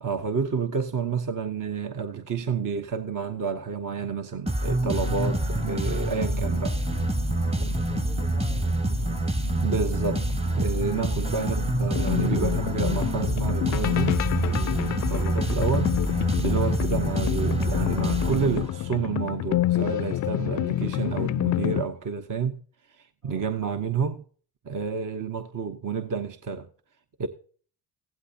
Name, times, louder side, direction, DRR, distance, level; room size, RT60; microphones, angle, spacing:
voice 1, 0.0-6.8 9.6-10.3 10.6-14.2 14.5-22.6 23.0-24.2 24.6-26.7 27.2-27.3, right 5 dB, 50° right, 1.1 m, -30 dB
sound 1, 4.5-19.0, right 1 dB, 15° right, 1.0 m, -27 dB
sound 2, 4.8-18.4, right 1 dB, 70° right, 3.2 m, -35 dB
voice 2, 7.3-9.4 23.2-23.8, left 1 dB, 85° right, 4.5 m, -50 dB
sound 3, 11.9-21.8, left 14 dB, 45° left, 0.4 m, -28 dB
16.0 x 12.0 x 2.8 m
hypercardioid pair, 50°, 41 cm